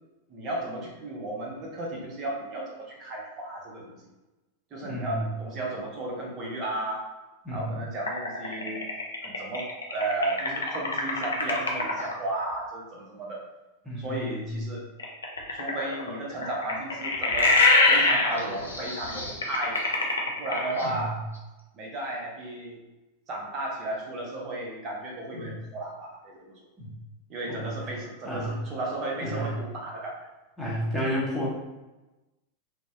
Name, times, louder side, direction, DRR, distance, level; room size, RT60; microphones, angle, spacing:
voice 1, 0.3-4.0 4.7-7.1 7.5-8.8 9.2-13.4 14.0-14.8 15.5-17.6 17.9-19.8 20.4-21.2 21.7-22.8 23.3-26.6 27.3-30.2, right 2 dB, 30° right, -2 dB, 0.7 m, -34 dB
voice 2, 4.8-5.3 7.4-7.7 13.8-14.6 20.8-21.2 25.3-25.6 26.8-26.9 27.5-27.9 28.2-28.6 29.2-29.5 30.6-31.5, equal, 5° left, -7 dB, 0.9 m, -32 dB
sound 1, 8.1-12.1 15.0-21.1, left 3 dB, 75° left, 0.4 m, -24 dB
2.6 x 2.0 x 2.4 m, 1.1 s
figure-of-eight pair, 90°, 0 cm